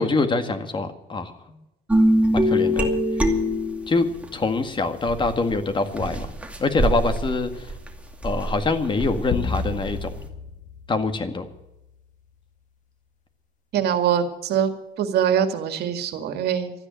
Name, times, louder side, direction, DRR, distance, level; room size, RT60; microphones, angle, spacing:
voice 1, 0.0-1.3 2.3-3.0 3.9-6.3 6.6-7.7 8.2-10.1 10.9-11.5, left 3 dB, 30° left, 8 dB, 1.9 m, -24 dB
sound 1, 1.9-4.3 5.0-10.2, equal, 5° right, 2.3 m, -24 dB
sound 2, 9.3-11.9, left 4 dB, 50° left, 1.3 m, -32 dB
voice 2, 13.7-14.7 15.0-16.7, right 9 dB, 70° right, 8 dB, 2.1 m, -23 dB
13.5 x 10.0 x 9.3 m, 0.93 s
cardioid pair, 110°, 17 cm